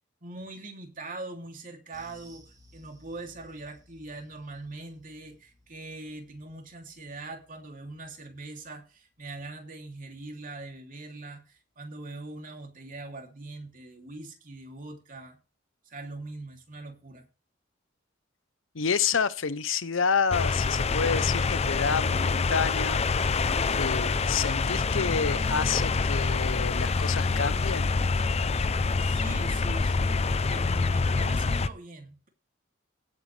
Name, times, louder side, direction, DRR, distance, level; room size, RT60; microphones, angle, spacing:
voice 1, 0.2-15.4 15.9-17.3 28.9-32.3, right 2 dB, 45° right, 3.0 m, -42 dB
sound 1, 1.9-10.6 10.9-11.1 11.5-11.6, equal, 20° right, 2.9 m, -60 dB
voice 2, 18.7-23.0 23.7-27.9, left 6 dB, 85° left, 0.8 m, -29 dB
sound 2, 20.3-31.7, left 4 dB, 35° left, 0.5 m, -26 dB
17.0 x 8.0 x 3.4 m
head